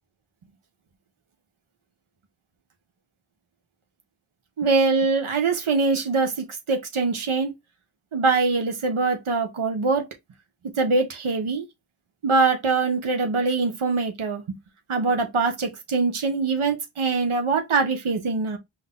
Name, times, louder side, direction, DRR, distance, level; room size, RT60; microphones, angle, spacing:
voice 1, 4.6-7.5 8.1-10.0 10.8-11.6 12.2-14.6 14.9-18.6, right 4 dB, 75° right, 1.0 m, -23 dB
3.8 x 2.8 x 3.6 m
wide cardioid pair, 45°, 49 cm